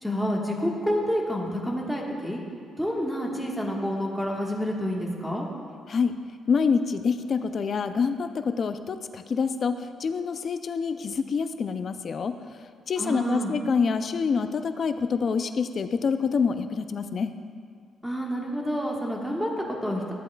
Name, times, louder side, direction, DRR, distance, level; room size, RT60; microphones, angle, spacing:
voice 1, 0.0-2.4 2.8-5.4 13.0-13.5 18.0-20.1, equal, ahead, -2 dB, 1.4 m, -28 dB
voice 2, 6.5-12.4 12.9-17.3, left 5 dB, 50° left, 10 dB, 0.4 m, -26 dB
13.0 x 7.9 x 2.3 m, 2.1 s
cardioid pair, 90°, 0 cm